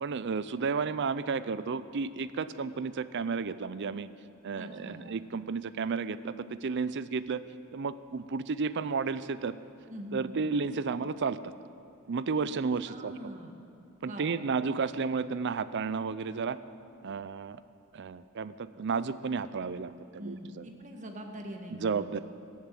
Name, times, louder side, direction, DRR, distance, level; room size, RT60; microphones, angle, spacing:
voice 1, 0.0-4.1 4.4-7.4 7.7-9.5 10.1-11.5 12.1-13.1 14.0-16.6 17.0-17.6 17.9-20.7 21.7-22.2, right 5 dB, 55° right, 14 dB, 0.5 m, -32 dB
voice 2, 4.5-5.0 9.9-10.4 12.9-13.5 14.0-14.5 20.2-22.2, right 1 dB, 35° right, 3 dB, 1.5 m, -43 dB
14.0 x 10.5 x 7.5 m, 2.6 s
head